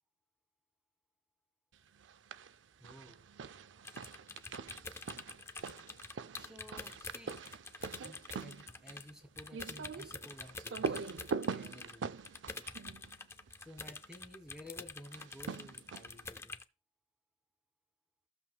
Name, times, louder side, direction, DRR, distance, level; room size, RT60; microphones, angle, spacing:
sound 1, 2.0-2.6 2.8-13.9 15.1-16.3, right 5 dB, 85° right, 0.5 m, -43 dB
voice 1, 2.8-3.2 6.3-7.4 8.0-12.2 13.6-16.6, equal, 5° right, 6 dB, 1.7 m, -54 dB
sound 2, 3.8-9.1 9.4-16.6, left 3 dB, 15° left, 0.5 m, -47 dB
14.5 x 7.4 x 2.2 m, 0.30 s
head